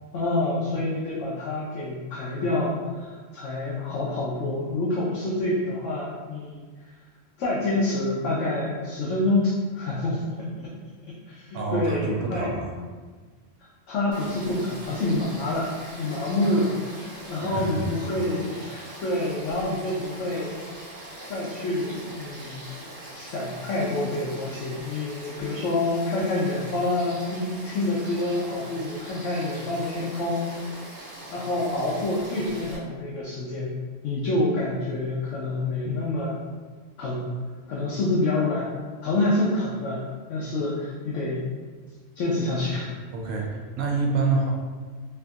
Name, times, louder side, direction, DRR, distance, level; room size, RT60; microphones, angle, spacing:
voice 1, 0.1-6.6 7.4-10.2 11.3-12.5 13.9-15.7 16.0-20.7 21.3-22.7 23.1-30.5 31.3-33.8 34.0-36.4 37.0-37.3 37.7-38.7 39.0-41.4 42.2-42.9, left 2 dB, 75° left, -6 dB, 0.9 m, -27 dB
voice 2, 11.5-12.8 16.4-16.7 17.4-17.8 43.1-44.5, right 3 dB, 85° right, 0 dB, 1.0 m, -27 dB
Frog / Stream, 14.1-32.8, right 1 dB, 60° right, 1.2 m, -42 dB
3.4 x 2.6 x 2.3 m, 1.4 s
omnidirectional pair, 1.3 m